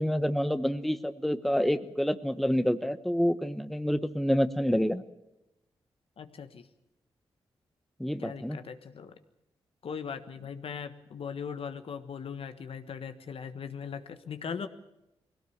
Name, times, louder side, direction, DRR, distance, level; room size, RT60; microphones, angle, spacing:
voice 1, 0.0-5.0 8.0-8.6, equal, ahead, 11 dB, 1.0 m, -28 dB
voice 2, 6.2-6.7 8.2-9.1 9.8-14.7, left 6 dB, 65° left, 9 dB, 1.4 m, -39 dB
21.0 x 17.0 x 8.0 m, 0.90 s
cardioid pair, 70°, 10 cm